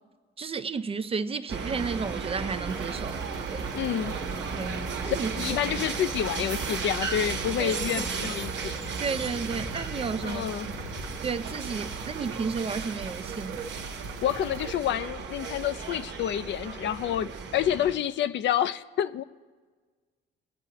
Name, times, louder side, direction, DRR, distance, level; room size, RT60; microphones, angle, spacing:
voice 1, 0.4-3.2 3.5-3.7 4.5-5.6 7.6-8.3 9.0-10.4 11.2-13.7, right 5 dB, 30° right, 0.4 m, -33 dB
sound 1, 1.5-17.9, right 5 dB, 65° right, 1.1 m, -35 dB
sound 2, 2.7-14.8, right 6 dB, 85° right, 0.6 m, -43 dB
voice 2, 3.7-4.1 5.0-8.8 10.2-10.7 14.2-19.2, left 10 dB, 65° left, 0.4 m, -28 dB
sound 3, 4.3-16.7, left 3 dB, 80° left, 1.4 m, -49 dB
23.0 x 8.1 x 2.9 m
cardioid pair, 90°, 20 cm